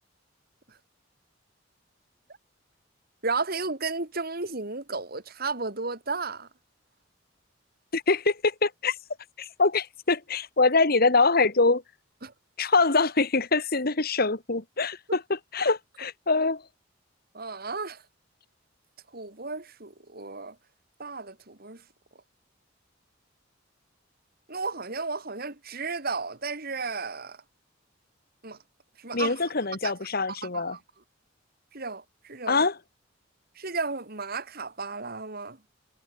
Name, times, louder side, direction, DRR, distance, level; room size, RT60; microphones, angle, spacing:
voice 1, 3.2-6.5 12.2-12.3 17.3-18.0 19.1-20.6 21.0-21.8 24.5-27.4 28.4-28.6 29.0-29.5 29.8-29.9 30.4-30.8 31.7-32.7 33.5-35.6, right 4 dB, 50° right, 3.1 m, -33 dB
voice 2, 7.9-9.0 9.4-11.8 12.6-16.6 29.1-30.8 32.5-32.7, left 3 dB, 50° left, 2.0 m, -24 dB
head